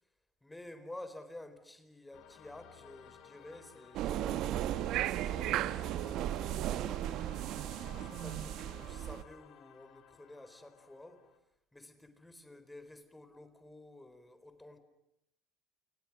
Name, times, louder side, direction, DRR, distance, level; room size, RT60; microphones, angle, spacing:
voice 1, 0.4-11.3 11.7-14.8, left 1 dB, 10° left, 4.5 m, -52 dB
sound 1, 2.1-11.4, left 9 dB, 65° left, 2.9 m, -56 dB
sound 2, 3.9-9.2, right 12 dB, 65° right, 1.0 m, -35 dB
29.5 x 29.0 x 6.4 m
supercardioid pair, 80°, 0 cm